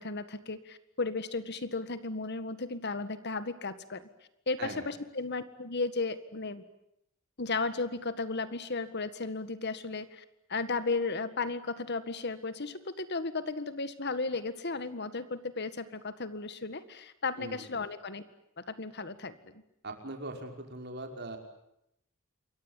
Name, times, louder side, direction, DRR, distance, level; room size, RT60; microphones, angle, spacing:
voice 1, 0.0-4.1 4.5-6.6 7.4-10.2 10.5-18.2 18.6-19.6, left 3 dB, 55° left, 12 dB, 1.8 m, -35 dB
voice 2, 19.8-21.4, right 2 dB, 55° right, 4 dB, 5.4 m, -40 dB
28.0 x 23.5 x 9.1 m, 0.78 s
head